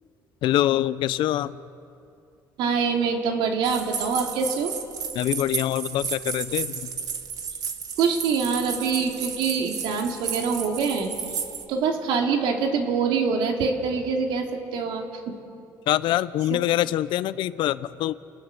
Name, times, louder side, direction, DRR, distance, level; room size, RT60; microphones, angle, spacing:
voice 1, 0.4-1.5 5.1-6.9 15.9-18.1, left 13 dB, 70° left, 16 dB, 0.8 m, -24 dB
voice 2, 2.6-4.7 8.0-11.1 11.7-15.4 16.0-16.2 16.5-16.6, right 5 dB, 75° right, 2 dB, 3.1 m, -25 dB
sound 1, 3.6-11.7, right 7 dB, 50° right, 1.9 m, -33 dB
29.5 x 19.0 x 7.2 m, 2.6 s
cardioid pair, 110°, 9 cm